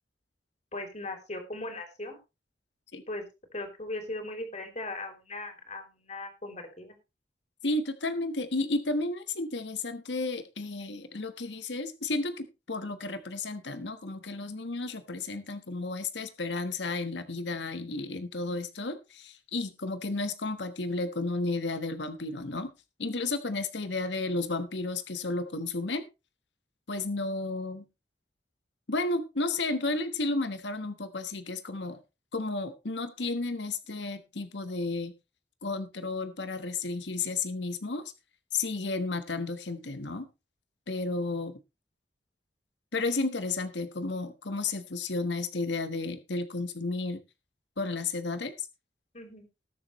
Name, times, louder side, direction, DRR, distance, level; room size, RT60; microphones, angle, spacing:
voice 1, 0.7-2.2 3.1-3.2 3.5-6.9 49.1-49.4, left 2 dB, 40° left, 5 dB, 3.2 m, -38 dB
voice 2, 7.6-22.7 23.0-26.0 26.9-27.8 28.9-32.0 32.3-35.1 35.6-38.0 38.5-40.3 40.9-41.5 42.9-47.2 47.8-48.7, left 3 dB, 75° left, 9 dB, 1.3 m, -32 dB
19.5 x 7.2 x 3.1 m, 0.27 s
head